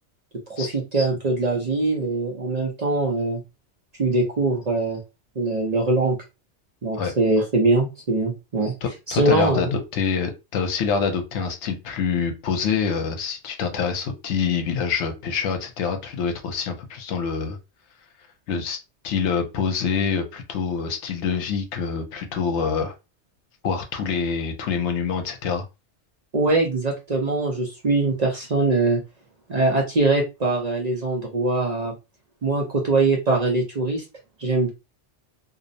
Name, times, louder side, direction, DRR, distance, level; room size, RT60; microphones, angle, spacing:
voice 1, 0.5-3.4 4.0-5.0 5.4-6.2 6.8-8.7 9.1-9.7 26.3-29.0 29.5-31.9 32.4-34.0 34.4-34.7, right 2 dB, 45° right, -1 dB, 0.6 m, -22 dB
voice 2, 8.8-17.6 18.5-18.8 19.0-22.9 23.6-25.6, left 6 dB, 80° left, 5 dB, 0.9 m, -26 dB
2.5 x 2.0 x 2.6 m, 0.26 s
omnidirectional pair, 1.2 m